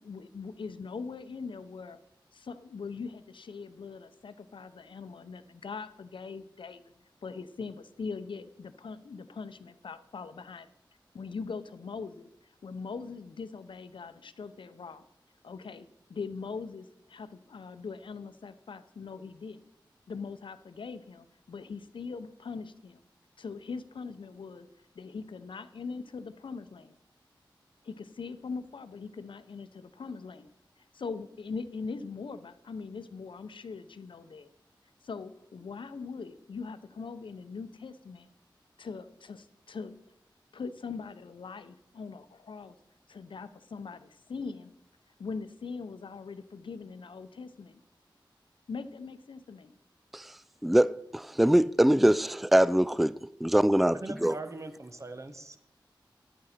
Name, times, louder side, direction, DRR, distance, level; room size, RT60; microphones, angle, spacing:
voice 1, 0.0-2.0 2.3-6.9 7.2-10.7 11.1-12.3 12.6-15.0 15.4-19.6 20.1-23.0 23.4-24.7 24.9-26.9 27.8-30.5 30.9-34.5 35.0-38.3 38.8-40.0 40.5-42.8 43.1-44.7 45.2-47.8 48.7-49.7, left 4 dB, 80° left, 0.7 m, -41 dB
voice 2, 50.6-53.1 53.4-54.0 54.2-54.3, right 1 dB, ahead, 0.3 m, -23 dB
voice 3, 53.9-55.6, right 2 dB, 35° right, 1.0 m, -41 dB
11.0 x 8.8 x 4.3 m
cardioid pair, 50°, 8 cm